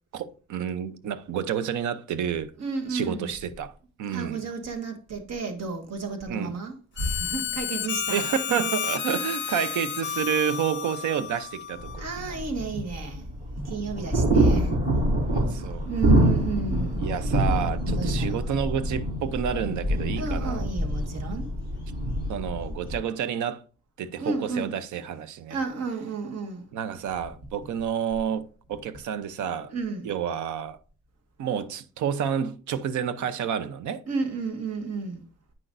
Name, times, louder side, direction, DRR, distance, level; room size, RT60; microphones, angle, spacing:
voice 1, 0.1-2.5 2.9-3.7 4.0-4.5 6.3-6.5 8.1-12.3 15.3-15.9 17.0-20.7 22.3-23.6 24.0-25.6 26.7-29.7 30.0-30.8 31.4-34.0, right 8 dB, 75° right, 0.8 m, -29 dB
voice 2, 2.6-3.3 4.1-8.2 9.5-9.7 12.0-13.3 13.6-14.7 15.8-17.1 17.8-18.5 20.2-21.5 24.2-24.7 25.5-26.8 29.7-30.1 34.1-35.2, right 4 dB, 60° right, 1.6 m, -32 dB
Harmonica, 7.0-12.1, left 9 dB, 40° left, 0.5 m, -32 dB
sound 1, 11.8-23.0, right 1 dB, 30° right, 3.3 m, -26 dB
8.9 x 5.9 x 2.6 m
cardioid pair, 90°, 30 cm